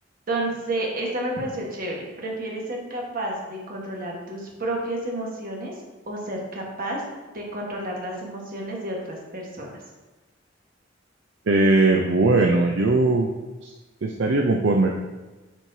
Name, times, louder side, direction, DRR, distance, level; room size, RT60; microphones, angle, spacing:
voice 1, 0.3-5.7 6.1-7.0 7.3-9.7, right 1 dB, 50° right, -1 dB, 1.4 m, -30 dB
voice 2, 11.5-13.3 13.6-13.7 14.0-14.9, right 2 dB, 65° right, 1 dB, 0.5 m, -19 dB
8.4 x 4.5 x 2.7 m, 1.2 s
head